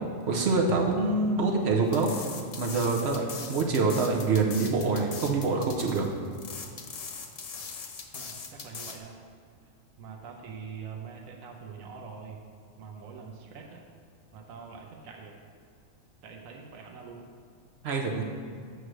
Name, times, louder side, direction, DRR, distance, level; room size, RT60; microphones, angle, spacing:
voice 1, 0.3-6.1 17.8-18.2, right 3 dB, 60° right, 0 dB, 0.9 m, -26 dB
sound 1, 1.9-9.0, left 5 dB, 70° left, 0.3 m, -41 dB
voice 2, 8.1-9.2 10.0-12.4 12.8-13.8 14.3-15.4 16.2-17.2, right 6 dB, 90° right, 1 dB, 1.1 m, -44 dB
7.9 x 3.2 x 6.1 m, 2.2 s
omnidirectional pair, 1.4 m